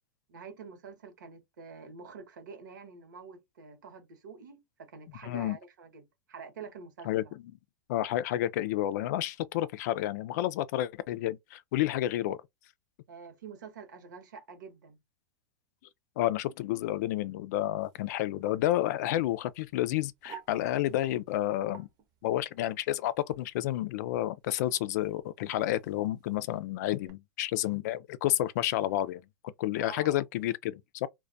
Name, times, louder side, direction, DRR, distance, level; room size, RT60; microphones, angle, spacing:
voice 1, 0.3-7.3 13.1-15.0 29.8-30.2, right 5 dB, 80° right, 1.0 m, -47 dB
voice 2, 5.2-5.6 7.1-7.2 7.9-12.4 16.2-21.9 22.2-29.2 29.6-31.1, left 14 dB, 65° left, 0.3 m, -30 dB
sound 1, 17.8-27.1, right 8 dB, 40° right, 0.7 m, -55 dB
2.2 x 2.2 x 2.6 m
hypercardioid pair, 100°, 10 cm